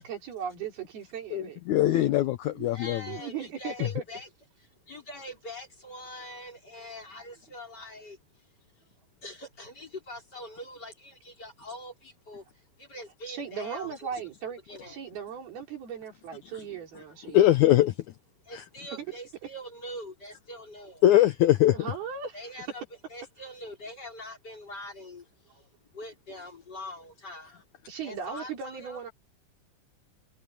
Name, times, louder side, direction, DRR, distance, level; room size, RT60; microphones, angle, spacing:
voice 1, 0.0-1.6 2.5-2.7 3.1-4.0 13.3-14.6 14.9-17.4 18.9-19.1 21.7-22.6 27.9-29.1, right 7 dB, 80° right, 6.0 m, -37 dB
voice 2, 1.3-3.0 17.3-17.9 18.5-18.6 21.0-21.8, left 13 dB, 90° left, 1.7 m, -21 dB
voice 3, 2.7-4.3 4.6-8.5 9.2-13.9 14.7-15.0 18.4-21.0 22.3-22.8 23.1-27.6 28.0-29.0, left 1 dB, 25° left, 4.4 m, -43 dB
omnidirectional pair, 4.3 m